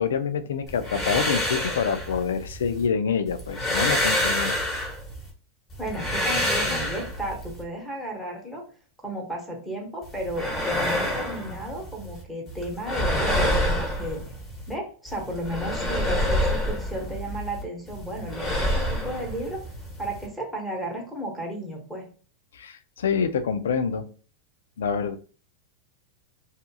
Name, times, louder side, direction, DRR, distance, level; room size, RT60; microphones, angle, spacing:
voice 1, 0.0-4.6 22.5-24.1 24.8-25.2, left 6 dB, 90° left, 10 dB, 0.3 m, -26 dB
sound 1, 0.7-2.9 3.3-5.3 5.7-7.6 10.0-12.2 12.5-14.7 15.1-17.6 17.9-20.3, left 1 dB, 25° left, 1.1 m, -27 dB
voice 2, 5.8-8.6 9.0-14.2 14.7-19.6 20.0-22.1, right 1 dB, ahead, -1 dB, 0.9 m, -34 dB
2.8 x 2.4 x 2.2 m, 0.39 s
hypercardioid pair, 125°, 0 cm